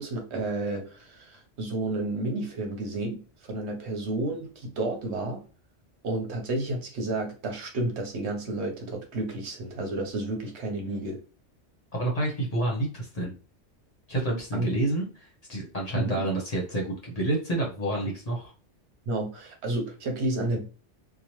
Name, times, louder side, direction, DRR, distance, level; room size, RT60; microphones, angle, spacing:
voice 1, 0.0-5.4 6.0-11.2 14.5-14.7 15.9-16.2 19.1-20.7, right 2 dB, 70° right, 3 dB, 1.0 m, -31 dB
voice 2, 11.9-13.3 14.1-18.5, right 2 dB, 40° left, -2 dB, 0.8 m, -29 dB
2.9 x 2.1 x 3.0 m, 0.36 s
omnidirectional pair, 1.2 m